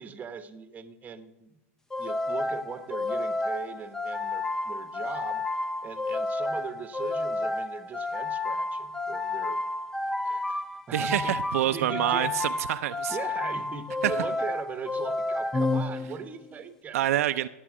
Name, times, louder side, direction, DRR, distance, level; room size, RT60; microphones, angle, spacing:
voice 1, 0.0-1.6 2.0-5.4 5.8-9.6 10.2-11.4 11.6-12.4 13.1-17.1, right 6 dB, 20° right, 11 dB, 1.0 m, -40 dB
sound 1, 1.9-16.4, left 2 dB, 5° left, 0.6 m, -31 dB
voice 2, 10.9-13.2 14.0-14.1 16.9-17.5, right 13 dB, 70° right, 10 dB, 0.6 m, -26 dB
17.5 x 7.5 x 6.1 m, 0.98 s
hypercardioid pair, 135°, 8 cm